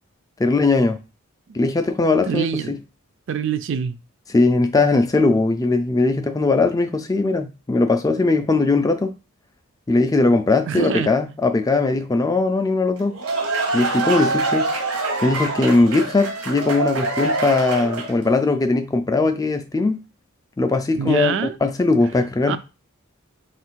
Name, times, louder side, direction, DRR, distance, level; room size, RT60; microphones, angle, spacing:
voice 1, 0.4-1.0 1.5-2.8 4.3-9.2 9.9-13.2 13.7-14.7 15.2-20.0 20.6-21.4 21.6-22.6, left 3 dB, 15° left, 0.3 m, -19 dB
voice 2, 2.3-2.7 3.3-4.0 10.7-11.1 20.9-21.6 22.5-22.6, right 7 dB, 60° right, 0.4 m, -25 dB
sound 1, 13.0-18.3, right 3 dB, 80° right, 1.0 m, -24 dB
3.3 x 2.5 x 4.5 m
head